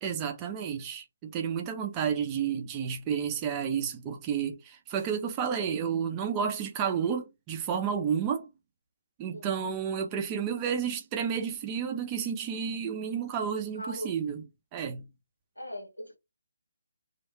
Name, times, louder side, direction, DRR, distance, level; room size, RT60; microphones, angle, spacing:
voice 1, 0.0-8.5 9.2-14.5 14.7-15.0, right 7 dB, 20° right, 0.6 m, -31 dB
voice 2, 13.8-14.1 15.6-16.2, equal, 85° left, 1.1 m, -39 dB
3.1 x 2.4 x 2.9 m
figure-of-eight pair, 145°, 0 cm